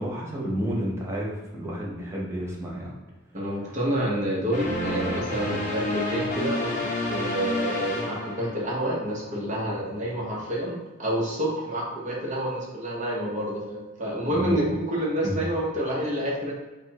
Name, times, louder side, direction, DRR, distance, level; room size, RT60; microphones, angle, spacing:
voice 1, 0.0-2.9 14.3-14.7 15.2-15.4, equal, 15° right, -4 dB, 0.8 m, -30 dB
voice 2, 3.3-16.5, right 1 dB, 40° right, -4 dB, 1.0 m, -28 dB
sound 1, 4.5-9.0, left 2 dB, 40° left, 0.7 m, -29 dB
5.0 x 2.2 x 2.9 m, 1.2 s
head